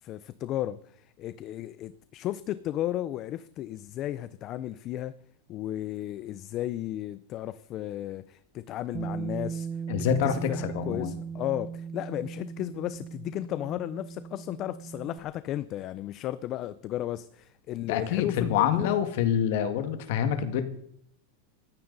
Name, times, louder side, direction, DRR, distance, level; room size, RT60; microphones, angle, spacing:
voice 1, 0.0-5.2 5.5-9.7 9.9-18.9, left 13 dB, 35° left, 0.5 m, -34 dB
Bass guitar, 8.9-15.2, right 6 dB, 20° right, 0.8 m, -38 dB
voice 2, 9.9-11.1 17.9-20.6, left 9 dB, 60° left, 1.9 m, -26 dB
19.0 x 15.0 x 4.1 m
supercardioid pair, 155°, 0 cm